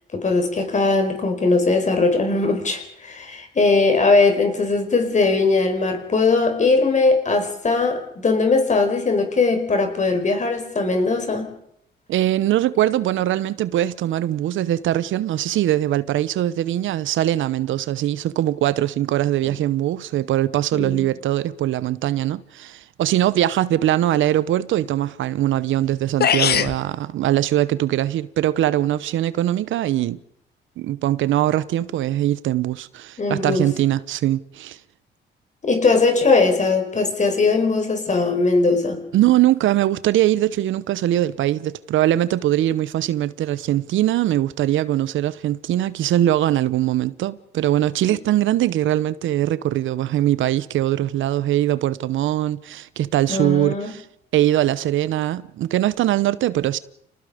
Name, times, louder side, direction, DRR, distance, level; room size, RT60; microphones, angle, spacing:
voice 1, 0.1-11.5 20.7-21.1 33.2-33.7 35.6-39.0 53.3-53.9, left 3 dB, 35° left, 5.0 m, -20 dB
voice 2, 12.1-30.2 30.8-34.8 39.1-54.0 54.3-56.8, right 13 dB, 75° right, 0.8 m, -21 dB
sound 1, 25.8-25.9 26.2-26.8, left 8 dB, 55° left, 1.1 m, -19 dB
29.0 x 19.0 x 5.0 m
cardioid pair, 90°, 20 cm